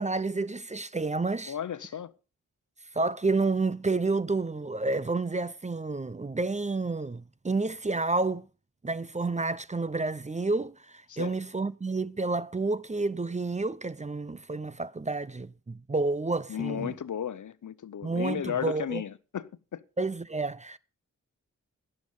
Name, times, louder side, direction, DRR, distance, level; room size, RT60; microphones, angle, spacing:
voice 1, 0.0-1.5 2.9-8.5 8.8-16.9 18.0-19.0 20.0-20.8, right 3 dB, 20° right, 0.6 m, -30 dB
voice 2, 1.5-2.1 11.1-11.3 16.5-19.8, left 8 dB, 65° left, 0.8 m, -34 dB
12.0 x 10.5 x 5.4 m
cardioid pair, 40°, 33 cm